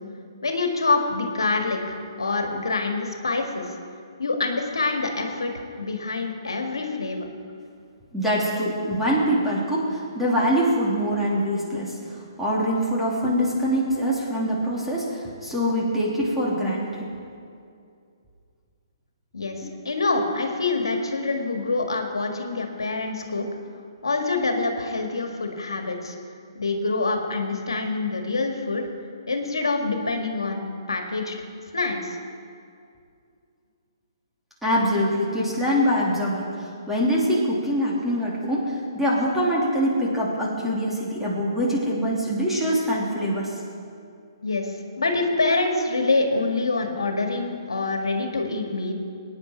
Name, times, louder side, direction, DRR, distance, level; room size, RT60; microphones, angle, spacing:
voice 1, 0.4-3.7 4.2-5.5 5.8-7.3 19.3-23.4 24.0-26.2 26.6-28.8 29.3-31.4 31.7-32.2 44.4-48.9, left 3 dB, 80° left, 4 dB, 1.8 m, -26 dB
voice 2, 8.1-12.0 12.4-17.1 19.6-19.7 34.6-43.5, equal, 5° right, -6 dB, 3.1 m, -24 dB
21.5 x 9.6 x 4.5 m, 2.4 s
figure-of-eight pair, 130°, 2 cm